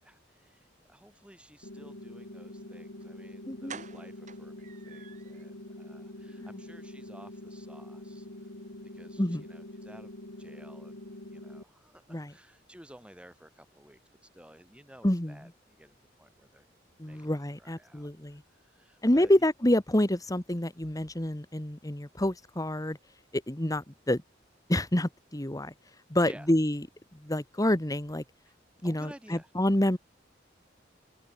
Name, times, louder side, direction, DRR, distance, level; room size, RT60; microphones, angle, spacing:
voice 1, 0.0-8.3 8.9-16.7 17.1-18.1 18.5-19.5 26.2-26.5 28.5-28.6 28.8-29.5, equal, 5° right, 7.4 m, -54 dB
sound 1, 1.6-11.6, left 1 dB, 90° left, 3.0 m, -45 dB
sound 2, 3.0-3.1 3.7-5.4 5.8-5.9 6.3-6.4 6.7-6.8, right 6 dB, 40° right, 5.3 m, -48 dB
voice 2, 3.5-3.8 6.4-6.6 9.2-9.4 12.1-12.3 15.0-15.4 17.0-18.4 19.0-23.0 23.3-24.2 24.7-25.7 26.1-26.8 27.2-28.2 28.8-30.0, left 1 dB, 20° left, 1.7 m, -28 dB
head